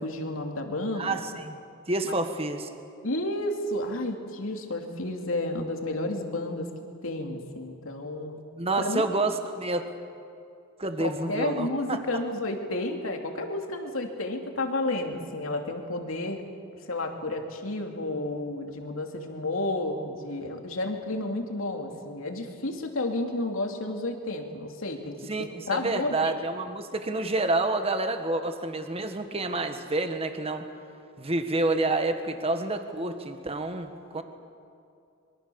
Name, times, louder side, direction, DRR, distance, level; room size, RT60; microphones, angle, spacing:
voice 1, 0.0-1.2 2.0-2.2 3.0-6.7 7.0-8.4 8.8-9.1 11.0-16.4 16.9-26.4, left 2 dB, 80° left, 3 dB, 2.8 m, -31 dB
voice 2, 1.0-1.6 1.9-2.7 8.6-9.9 10.8-12.0 25.3-30.7 31.2-34.2, right 2 dB, 30° right, 7 dB, 1.6 m, -28 dB
25.5 x 23.5 x 7.1 m, 2.5 s
head